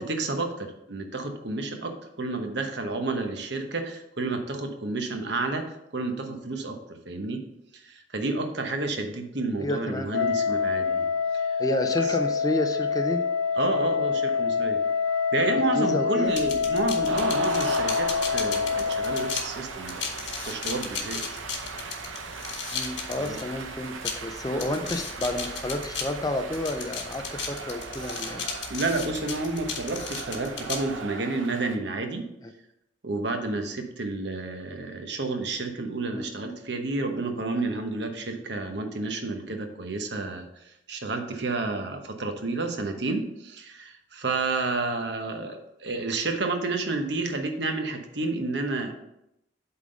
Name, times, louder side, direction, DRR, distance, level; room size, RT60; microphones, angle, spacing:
voice 1, 0.0-6.8 7.1-7.4 7.7-11.0 11.3-11.5 12.0-12.1 13.6-14.8 15.3-20.1 20.4-21.2 23.2-23.4 28.7-32.3 33.0-48.9, right 3 dB, 60° right, 5 dB, 1.0 m, -30 dB
voice 2, 9.6-10.3 11.6-13.2 15.7-16.4 22.7-28.5 36.1-36.3, left 1 dB, 20° left, 6 dB, 0.5 m, -30 dB
Wind instrument woodwind instrument, 10.1-19.5, left 5 dB, 85° left, 0.7 m, -26 dB
sound 1, 16.3-31.0, left 5 dB, 70° left, 1.3 m, -36 dB
sound 2, 17.0-31.8, right 4 dB, 85° right, 0.8 m, -37 dB
8.3 x 3.9 x 5.1 m, 0.83 s
head